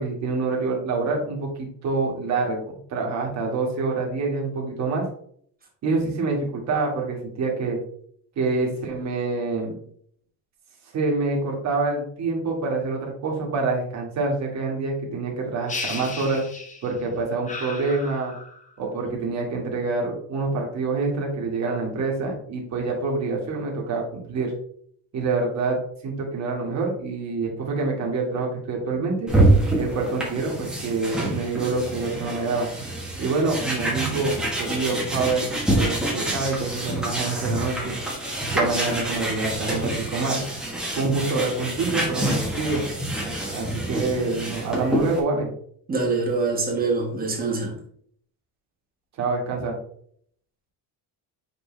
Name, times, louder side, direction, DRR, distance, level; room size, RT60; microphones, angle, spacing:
voice 1, 0.0-5.1 5.8-7.8 8.4-9.7 10.9-16.4 16.8-18.3 18.8-24.5 25.1-25.8 26.0-29.3 29.8-32.7 33.2-38.0 38.5-40.5 41.0-42.8 43.5-45.5 49.2-49.8, right 3 dB, 40° right, -1 dB, 1.8 m, -26 dB
sound 1, 15.7-17.0 17.5-18.7, left 3 dB, 20° left, 0.7 m, -35 dB
sound 2, 29.3-45.2, right 1 dB, ahead, 1.4 m, -26 dB
voice 2, 45.9-47.8, right 3 dB, 20° right, 0 dB, 1.4 m, -24 dB
6.0 x 5.0 x 3.2 m, 0.62 s
cardioid pair, 175°, 41 cm